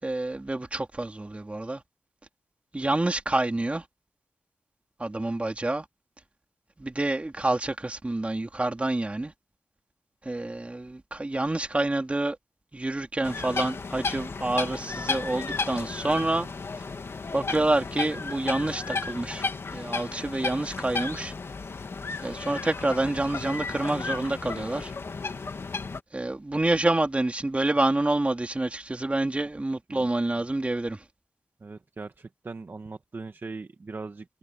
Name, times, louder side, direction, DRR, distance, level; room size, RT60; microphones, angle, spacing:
voice 1, 0.0-1.8 2.7-3.8 5.0-5.8 6.8-9.3 10.2-12.4 12.7-16.5 17.3-19.4 19.7-21.3 22.2-24.9 26.1-31.0, right 2 dB, 25° right, 3.2 m, -27 dB
sound 1, 13.2-26.0, left 4 dB, 60° left, 2.3 m, -34 dB
voice 2, 31.6-34.2, right 3 dB, 50° right, 1.7 m, -40 dB
cardioid pair, 60°, 5 cm